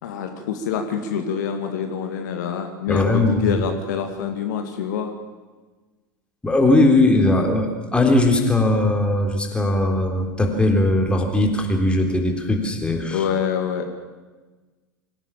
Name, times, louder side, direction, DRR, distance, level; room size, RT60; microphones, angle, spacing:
voice 1, 0.0-5.1 13.1-13.9, left 7 dB, 60° left, 5 dB, 2.2 m, -26 dB
voice 2, 2.9-3.6 6.4-13.2, left 2 dB, 10° left, 3 dB, 3.7 m, -19 dB
25.0 x 16.5 x 7.3 m, 1.3 s
figure-of-eight pair, 80°, 11 cm